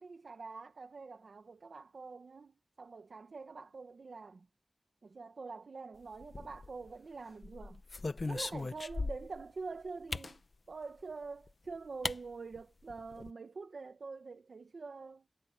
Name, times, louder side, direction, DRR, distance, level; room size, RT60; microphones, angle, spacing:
voice 1, 0.0-4.5 5.0-7.8 8.2-10.4 10.7-15.3, right 4 dB, 90° right, 1.4 m, -46 dB
sound 1, 6.2-6.9 7.4-9.4 10.1-10.4 11.5-11.6 12.0-12.2 12.5-12.6 12.9-13.3, left 3 dB, 65° left, 0.9 m, -38 dB
wide cardioid pair, 55°, 0 cm